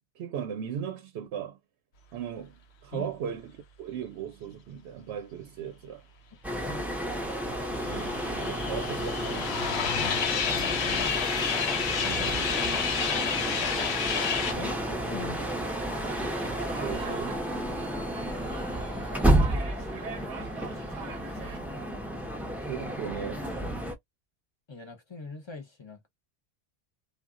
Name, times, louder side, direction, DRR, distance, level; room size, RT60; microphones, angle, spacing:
voice 1, 0.0-1.6 2.1-3.5 3.8-6.0 7.9-9.5 12.0-12.5 16.8-17.4 22.6-23.8, right 9 dB, 85° right, 0.8 m, -37 dB
voice 2, 6.3-7.1 9.9-11.2 14.5-15.5 20.0-20.5 24.7-26.1, left 4 dB, 30° left, 0.7 m, -42 dB
sound 1, 6.4-23.9, right 1 dB, ahead, 0.4 m, -31 dB
sound 2, 7.4-14.5, left 7 dB, 75° left, 0.9 m, -30 dB
sound 3, 14.5-21.6, right 6 dB, 50° right, 0.7 m, -42 dB
2.3 x 2.0 x 3.6 m
omnidirectional pair, 1.1 m